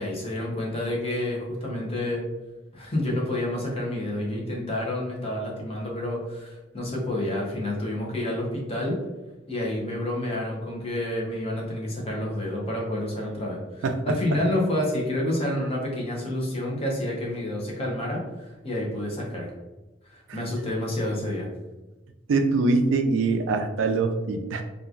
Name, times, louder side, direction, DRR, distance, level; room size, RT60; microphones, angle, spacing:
voice 1, 0.0-2.3 2.7-9.0 9.5-19.5 20.1-21.5, left 1 dB, 30° left, -2 dB, 0.7 m, -29 dB
voice 2, 22.3-24.6, right 3 dB, 75° right, 6 dB, 0.3 m, -23 dB
2.9 x 2.3 x 2.4 m, 1.1 s
head